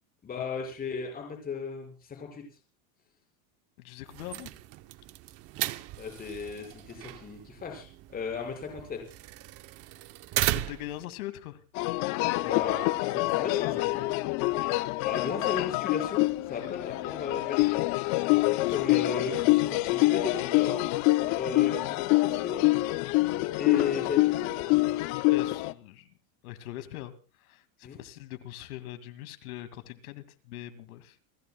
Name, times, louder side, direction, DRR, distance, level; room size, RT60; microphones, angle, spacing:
voice 1, 0.2-2.4 6.0-7.9 8.1-9.0 12.3-14.1 15.0-17.8 18.3-18.4 18.7-20.8 21.4-22.6 23.5-24.8 27.8-28.0, left 5 dB, 20° left, 2 dB, 5.9 m, -35 dB
voice 2, 3.8-4.5 10.5-11.6 16.6-17.0 18.6-19.3 25.3-26.1 26.4-31.2, left 14 dB, 80° left, 10 dB, 2.4 m, -42 dB
sound 1, 4.1-11.0, right 16 dB, 35° right, 0.8 m, -36 dB
sound 2, 11.8-25.7, left 20 dB, 40° left, 0.7 m, -26 dB
29.5 x 14.5 x 2.3 m, 0.34 s
supercardioid pair, 150°, 43 cm